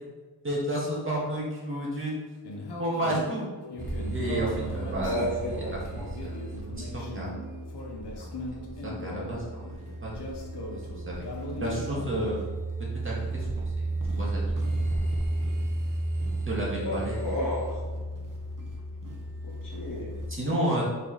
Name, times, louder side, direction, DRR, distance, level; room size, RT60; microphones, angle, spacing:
voice 1, 0.4-2.1 2.8-3.5 4.1-5.2 5.9-7.3 8.1-8.3 8.8-10.3 11.1-11.2 11.5-12.4 12.9-14.6 16.5-17.2 20.3-20.8, right 1 dB, 30° right, -5 dB, 1.9 m, -31 dB
sound 1, 2.4-12.4, left 1 dB, 90° left, 1.1 m, -39 dB
sound 2, 3.8-20.3, right 2 dB, 55° right, 1.3 m, -33 dB
voice 2, 5.0-5.7 16.8-17.7 19.6-20.1, left 1 dB, 55° left, -4 dB, 2.0 m, -31 dB
5.2 x 4.8 x 4.8 m, 1.3 s
wide cardioid pair, 130°, 39 cm